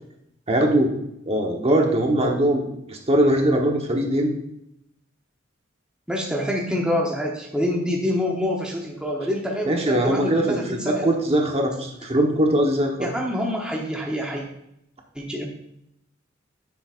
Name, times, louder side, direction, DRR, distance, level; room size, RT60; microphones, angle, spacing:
voice 1, 0.5-1.0 1.3-4.3 9.7-13.1, right 1 dB, 30° right, 1 dB, 1.1 m, -21 dB
voice 2, 6.1-11.2 13.0-14.4 15.1-15.5, left 1 dB, 5° right, -2 dB, 1.0 m, -26 dB
9.7 x 7.2 x 2.5 m, 0.79 s
head